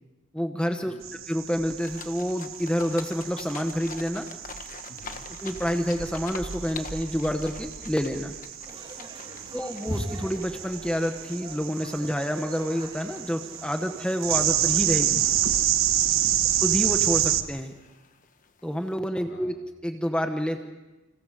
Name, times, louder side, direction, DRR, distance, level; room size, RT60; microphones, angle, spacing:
voice 1, 0.3-0.9 1.3-4.3 5.3-8.3 9.5-15.3 16.6-17.7 18.6-19.5 19.8-20.6, equal, 5° left, 5 dB, 1.0 m, -28 dB
voice 2, 0.9-1.2 4.9-5.2 9.2-9.8 16.0-16.4 19.3-19.6, left 1 dB, 80° left, 1 dB, 2.3 m, -51 dB
sound 1, 1.0-17.4, right 10 dB, 80° right, 1.1 m, -29 dB
sound 2, 1.8-18.9, left 5 dB, 40° left, 1.3 m, -47 dB
sound 3, 8.6-15.7, equal, 25° right, 2.7 m, -41 dB
29.5 x 26.5 x 5.0 m, 1.1 s
head